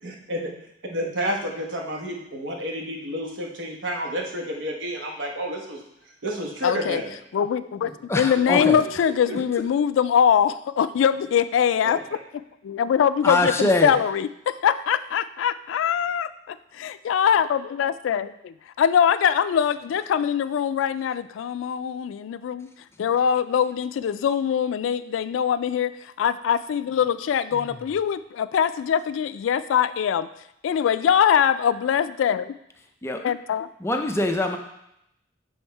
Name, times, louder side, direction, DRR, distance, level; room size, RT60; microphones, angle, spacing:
voice 1, 0.0-0.5 0.9-7.1 9.2-9.4, equal, 65° right, 1 dB, 1.1 m, -30 dB
voice 2, 6.6-7.0 7.3-12.0 12.6-14.1 14.5-22.7 23.0-30.3 30.6-32.5 33.2-33.7, left 8 dB, 90° left, 14 dB, 0.3 m, -23 dB
voice 3, 8.1-8.8 9.3-9.4 13.2-14.0 27.5-27.8 33.0-33.2 33.8-34.6, left 2 dB, 15° left, 4 dB, 0.5 m, -24 dB
7.1 x 3.6 x 4.5 m, 0.80 s
head